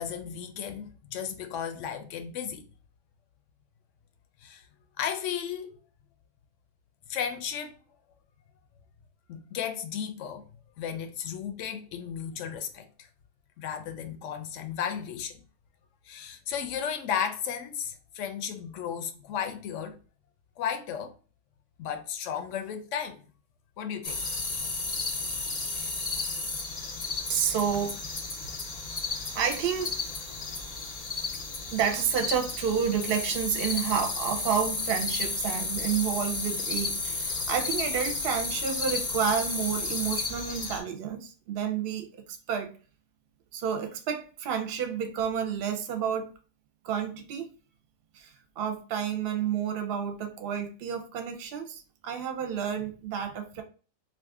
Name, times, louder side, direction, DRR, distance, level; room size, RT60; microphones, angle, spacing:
voice 1, 0.0-2.6 4.4-4.7 5.0-5.8 7.1-7.7 9.3-10.4 10.8-13.1 13.6-15.4 16.1-20.0 20.6-21.1 21.8-23.3 23.8-24.2 25.7-25.9, left 8 dB, 75° left, 0.9 m, -34 dB
sound 1, 24.0-40.8, left 3 dB, 45° left, 0.5 m, -33 dB
voice 2, 27.3-28.0 29.3-29.9 31.7-42.7 43.5-46.3 46.8-47.5 48.1-53.6, right 7 dB, 60° right, 0.7 m, -30 dB
2.6 x 2.4 x 3.5 m
omnidirectional pair, 1.3 m